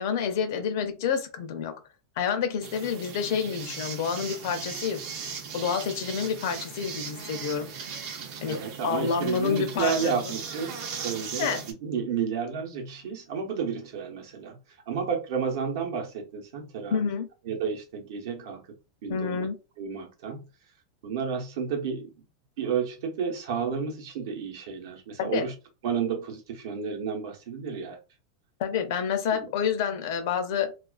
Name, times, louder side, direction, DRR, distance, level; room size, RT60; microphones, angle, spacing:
voice 1, 0.0-1.7 2.2-5.0 5.5-7.7 8.4-10.3 11.4-11.6 16.9-17.3 19.1-19.5 25.2-25.5 28.6-30.7, left 7 dB, 55° left, 0.5 m, -28 dB
sound 1, 2.6-11.7, right 6 dB, 40° right, 0.5 m, -38 dB
voice 2, 8.5-14.6 14.9-17.1 17.4-18.6 19.0-19.5 19.8-20.5 21.0-22.1 22.6-25.5 25.8-28.0 29.3-29.5, right 6 dB, 60° right, 0.8 m, -31 dB
2.3 x 2.2 x 2.3 m
supercardioid pair, 175°, 2 cm